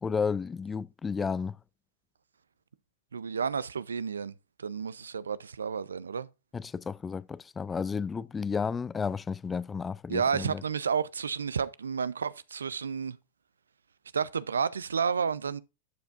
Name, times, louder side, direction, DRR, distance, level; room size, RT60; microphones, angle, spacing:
voice 1, 0.0-1.6 6.5-10.6, left 5 dB, 20° left, 0.3 m, -32 dB
voice 2, 3.1-6.3 10.1-13.2 14.1-15.6, right 6 dB, 85° right, 0.4 m, -31 dB
11.5 x 5.7 x 2.4 m
hypercardioid pair, 100°, 0 cm